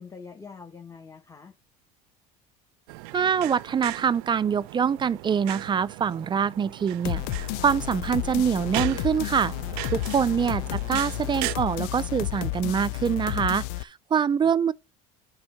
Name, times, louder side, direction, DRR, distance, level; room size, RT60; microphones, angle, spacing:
voice 1, 0.0-1.5 10.5-10.9 14.4-14.6, left 5 dB, 15° left, 1.3 m, -45 dB
sound 1, 2.9-11.6, right 20 dB, 85° right, 0.5 m, -38 dB
voice 2, 3.1-9.5 9.9-14.7, right 7 dB, 25° right, 0.4 m, -25 dB
sound 2, 7.0-13.8, left 16 dB, 80° left, 0.5 m, -31 dB
8.6 x 4.5 x 5.9 m
supercardioid pair, 105°, 19 cm